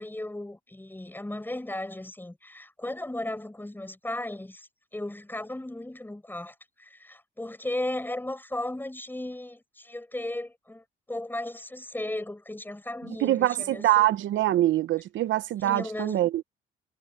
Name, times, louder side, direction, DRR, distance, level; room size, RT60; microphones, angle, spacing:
voice 1, 0.0-14.1 15.6-16.2, left 1 dB, 10° left, 6.5 m, -36 dB
voice 2, 13.2-16.4, right 14 dB, 75° right, 0.7 m, -24 dB
cardioid pair, 90°, 20 cm